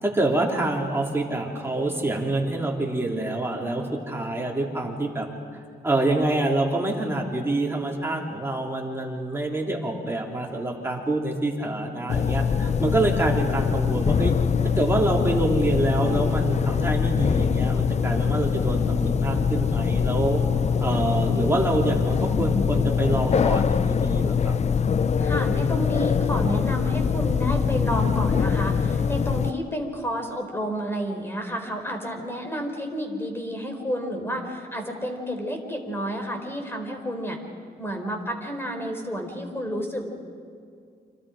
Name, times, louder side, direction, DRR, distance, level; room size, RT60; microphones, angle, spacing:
voice 1, 0.0-5.3 5.8-14.3 14.8-20.4 20.8-24.6, right 2 dB, 15° right, -1 dB, 3.6 m, -26 dB
sound 1, 12.1-29.5, left 6 dB, 40° left, 0.6 m, -23 dB
voice 2, 25.2-37.4 37.8-40.1, equal, 15° left, 4 dB, 4.2 m, -30 dB
29.5 x 27.0 x 5.1 m, 2.3 s
cardioid pair, 110°, 17 cm